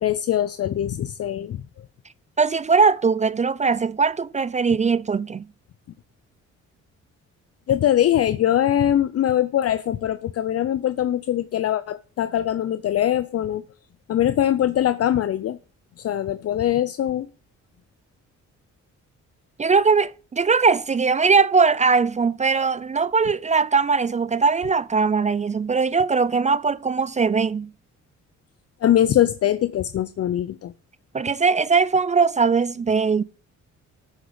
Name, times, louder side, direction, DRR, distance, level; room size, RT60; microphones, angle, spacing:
voice 1, 0.0-1.6 7.7-13.6 14.1-15.6 16.0-17.3 28.8-30.7, left 11 dB, 50° left, 0.6 m, -22 dB
voice 2, 2.4-5.5 19.6-27.7 31.1-33.2, right 5 dB, 25° right, 0.4 m, -20 dB
14.0 x 6.3 x 5.0 m
cardioid pair, 90°, 30 cm